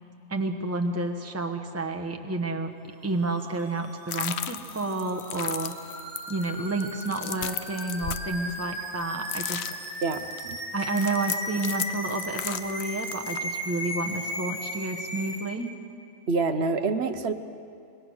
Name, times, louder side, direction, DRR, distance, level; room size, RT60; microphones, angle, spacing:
voice 1, 0.3-2.7 3.0-5.7 6.3-9.7 10.7-15.7, right 2 dB, 15° right, 5 dB, 1.1 m, -30 dB
sound 1, 3.1-15.4, equal, 45° left, 8.4 m, -36 dB
sound 2, 4.1-9.0 9.3-13.4, left 9 dB, 65° left, 1.0 m, -35 dB
voice 2, 10.0-10.6 16.3-17.3, right 4 dB, 60° right, 9 dB, 1.2 m, -27 dB
26.0 x 21.5 x 6.4 m, 2.4 s
omnidirectional pair, 1.2 m